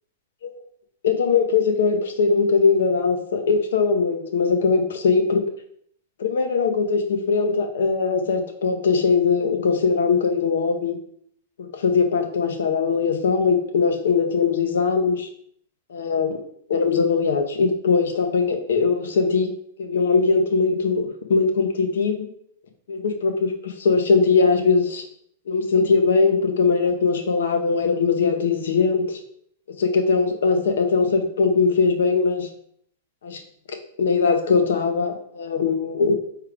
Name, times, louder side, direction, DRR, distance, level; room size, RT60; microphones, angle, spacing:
voice 1, 1.0-5.4 6.2-11.0 11.6-15.3 15.9-16.4 16.7-19.5 19.8-22.3 22.9-25.0 25.5-29.2 29.8-32.5 33.2-33.4 33.7-36.2, left 4 dB, 75° left, 6 dB, 0.8 m, -21 dB
4.6 x 3.3 x 3.4 m, 0.65 s
hypercardioid pair, 110°, 0 cm